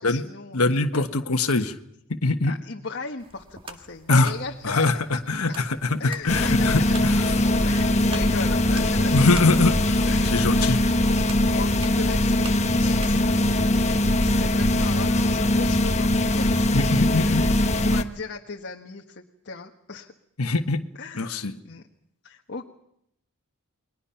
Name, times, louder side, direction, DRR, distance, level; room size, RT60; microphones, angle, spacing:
voice 1, 0.0-1.0 2.4-5.2 6.0-7.0 7.6-9.4 10.0-11.2 11.5-16.1 16.4-16.8 17.2-20.1 20.9-21.8 22.2-22.7, left 4 dB, 55° left, 2 dB, 1.4 m, -37 dB
voice 2, 0.5-1.7 2.2-2.5 4.1-4.3 4.6-6.0 6.2-7.3 9.1-10.1 10.3-10.8 16.7-17.4 20.4-20.8 21.2-21.5, left 3 dB, 75° left, 6 dB, 1.4 m, -22 dB
sound 1, 3.2-13.6, right 3 dB, 25° right, 1.9 m, -44 dB
sound 2, 6.3-18.0, left 1 dB, 30° left, 1.2 m, -21 dB
30.0 x 22.0 x 5.8 m, 0.74 s
head